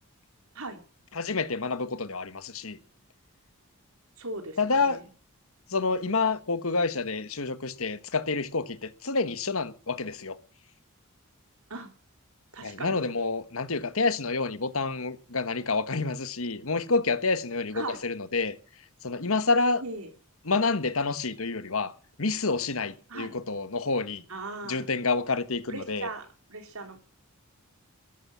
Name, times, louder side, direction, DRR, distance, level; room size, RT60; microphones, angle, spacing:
voice 1, 1.1-2.8 4.6-5.0 5.7-10.4 12.6-18.5 19.0-19.8 20.4-24.2 24.6-26.1, left 3 dB, 70° left, 1.4 m, -28 dB
voice 2, 4.2-5.0 11.7-11.9 12.5-13.1 17.7-18.0 19.8-20.1 23.1-23.4 24.3-24.9 25.7-27.0, right 2 dB, 75° right, 3.8 m, -39 dB
14.0 x 12.0 x 7.3 m
head